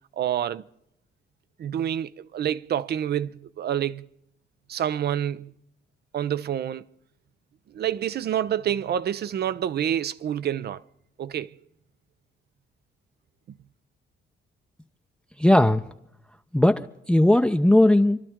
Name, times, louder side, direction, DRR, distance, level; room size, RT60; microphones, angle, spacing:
voice 1, 0.2-0.7 1.6-4.1 4.7-5.5 6.1-6.8 7.7-10.8 11.2-11.5, right 10 dB, 55° right, 0.6 m, -27 dB
voice 2, 15.4-15.8 16.5-18.2, left 1 dB, 5° left, 0.6 m, -18 dB
28.5 x 12.0 x 3.6 m
cardioid pair, 90°, 20 cm